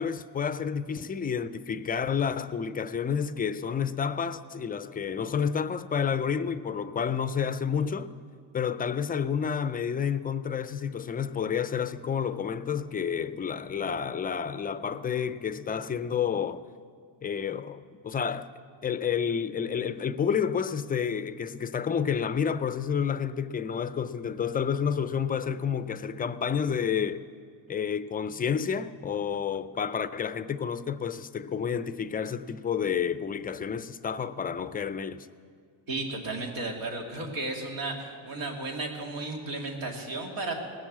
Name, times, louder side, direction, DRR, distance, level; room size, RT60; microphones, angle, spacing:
voice 1, 0.0-8.1 8.5-16.6 17.2-18.5 18.8-27.2 27.7-35.3, left 7 dB, 20° left, 0.3 m, -30 dB
voice 2, 35.9-40.6, right 2 dB, 85° right, 2.5 m, -34 dB
19.5 x 7.3 x 7.4 m
cardioid pair, 105°, 45 cm